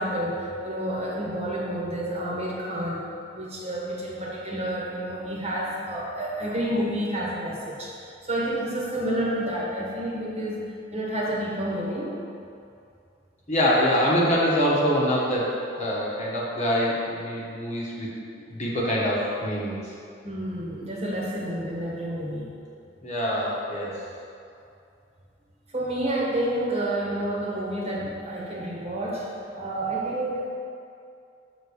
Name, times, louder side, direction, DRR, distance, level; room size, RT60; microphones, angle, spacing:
voice 1, 0.0-10.7 10.9-12.2 20.2-22.5 25.7-29.3 29.5-30.5, right 1 dB, 35° right, -5 dB, 1.3 m, -29 dB
voice 2, 13.5-18.1 18.5-19.7 23.0-24.0, equal, 35° left, -5 dB, 1.2 m, -24 dB
7.0 x 3.8 x 6.3 m, 2.5 s
head